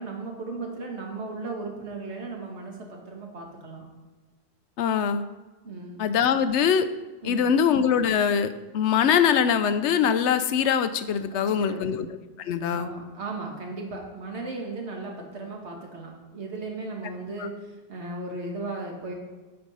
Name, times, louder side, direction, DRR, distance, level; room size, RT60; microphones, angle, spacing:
voice 1, 0.0-3.9 5.6-6.0 7.2-7.5 11.3-12.0 12.7-19.1, right 3 dB, 80° right, 1 dB, 1.7 m, -36 dB
voice 2, 4.8-5.2 6.0-6.9 7.2-12.1 12.4-12.9 17.4-17.5, left 7 dB, 90° left, 11 dB, 0.9 m, -23 dB
8.7 x 4.5 x 5.4 m, 1.2 s
omnidirectional pair, 1.1 m